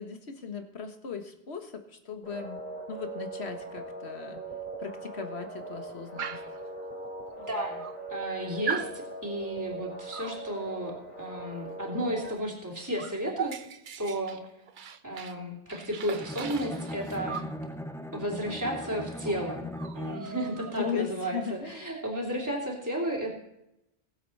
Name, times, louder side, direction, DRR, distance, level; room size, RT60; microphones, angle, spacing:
voice 1, 0.0-2.6 2.9-4.4 4.8-6.4 20.8-21.9, left 7 dB, 75° left, 5 dB, 1.8 m, -37 dB
sound 1, 2.2-12.3, right 2 dB, 40° left, 2.7 m, -40 dB
Dog, 6.2-6.6 7.4-7.5 7.8-8.3 8.7-9.0 10.1-10.4 12.2-12.4 12.7-15.4 15.7-17.6 18.8-19.0 19.3-19.4 19.7-21.0, right 7 dB, 55° right, 0.8 m, -38 dB
voice 2, 7.4-7.8 8.1-13.5 14.0-14.4 15.0-17.5 18.1-19.6 19.9-23.3, right 1 dB, 15° right, -2 dB, 3.0 m, -33 dB
Bowed string instrument, 16.2-20.6, left 1 dB, 5° left, 0.4 m, -39 dB
21.0 x 8.1 x 4.2 m, 0.84 s
omnidirectional pair, 1.1 m